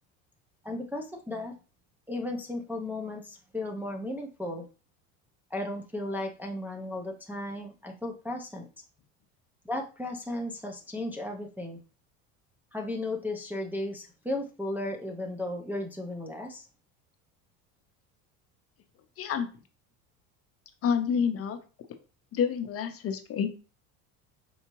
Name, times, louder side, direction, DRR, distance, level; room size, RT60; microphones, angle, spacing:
voice 1, 0.6-1.5 2.1-4.7 5.5-8.7 9.6-11.8 12.7-16.7, left 1 dB, 5° right, 0 dB, 0.5 m, -35 dB
voice 2, 19.2-19.5 20.8-21.6 22.3-23.5, left 7 dB, 40° left, 7 dB, 0.7 m, -28 dB
4.5 x 2.7 x 2.9 m, 0.34 s
supercardioid pair, 105°, 36 cm